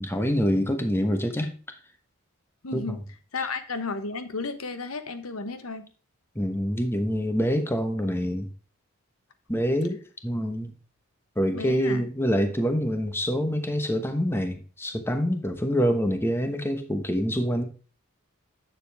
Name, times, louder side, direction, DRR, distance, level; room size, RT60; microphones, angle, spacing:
voice 1, 0.0-1.5 2.7-3.0 6.3-8.5 9.5-10.7 11.4-17.6, equal, 10° left, 6 dB, 1.1 m, -26 dB
voice 2, 2.6-3.0 3.3-5.9 11.5-12.0, left 4 dB, 75° left, 10 dB, 1.1 m, -33 dB
10.0 x 6.9 x 3.5 m, 0.39 s
head